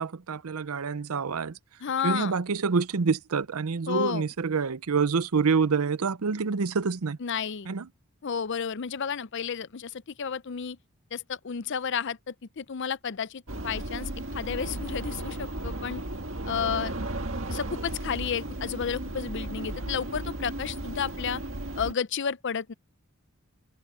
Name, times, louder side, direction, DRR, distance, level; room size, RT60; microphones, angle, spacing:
voice 1, 0.0-1.6 2.0-7.2 7.7-7.9, right 5 dB, 80° right, 0.6 m, -27 dB
voice 2, 1.8-2.3 3.9-4.2 7.2-7.7 8.2-10.8 11.1-16.0 16.5-16.9 17.5-21.4 21.8-22.7, left 7 dB, 55° left, 0.5 m, -32 dB
sound 1, 13.5-21.9, right 1 dB, 60° right, 2.0 m, -35 dB
head